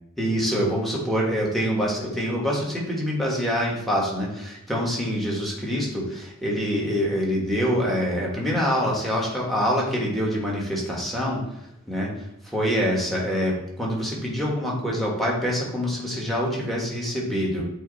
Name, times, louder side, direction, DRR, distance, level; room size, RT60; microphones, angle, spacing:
voice 1, 0.2-11.4 11.9-12.1 12.4-17.6, equal, ahead, -3 dB, 1.5 m, -25 dB
8.3 x 2.9 x 4.1 m, 0.83 s
head